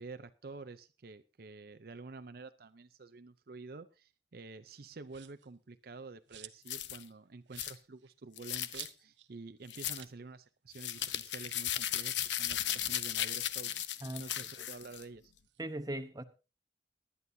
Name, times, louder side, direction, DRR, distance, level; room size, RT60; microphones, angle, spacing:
voice 1, 0.0-15.3, right 3 dB, 55° right, 0.6 m, -49 dB
sound 1, 5.1-5.5 5.9-6.8 7.1-7.2 7.5-9.3 9.6-9.7 9.9-10.2 10.5-10.6 10.9-11.3 12.0-13.8 14.2-15.6, right 12 dB, 85° right, 0.8 m, -53 dB
sound 2, 6.7-7.0 7.6-7.7 8.4-8.9 9.7-10.0 10.7-15.0, left 12 dB, 85° left, 0.7 m, -36 dB
voice 2, 15.6-16.2, right 1 dB, 20° right, 0.9 m, -38 dB
19.0 x 11.0 x 2.7 m
head